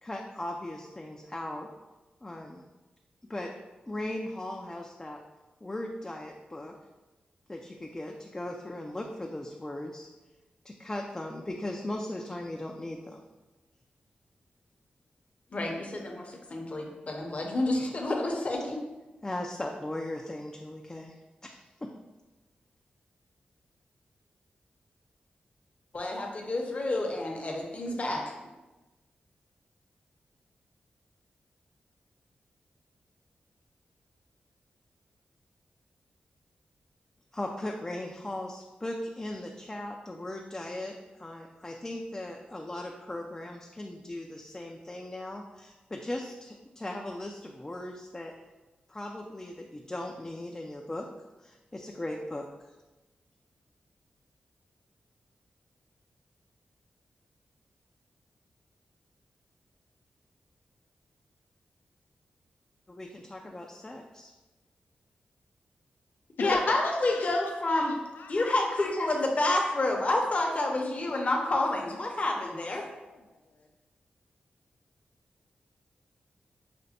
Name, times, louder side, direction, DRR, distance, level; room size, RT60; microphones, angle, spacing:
voice 1, 0.0-1.7 2.2-2.6 3.3-3.5 3.9-5.2 5.6-6.7 7.5-10.1 10.6-13.2 18.6-18.8 19.2-21.1 21.4-21.9 37.3-48.3 48.9-51.1 51.4-52.7 62.9-64.3, left 1 dB, 20° left, 1 dB, 0.3 m, -38 dB
voice 2, 15.5-18.8 25.9-28.2 66.4-68.0 68.3-72.9, left 2 dB, 40° left, 0 dB, 0.7 m, -29 dB
voice 3, 66.4-67.3 67.7-68.3 70.4-70.8 73.0-73.7, left 4 dB, 85° left, 3 dB, 0.4 m, -38 dB
5.1 x 2.1 x 2.7 m, 1.1 s
cardioid pair, 70°, 3 cm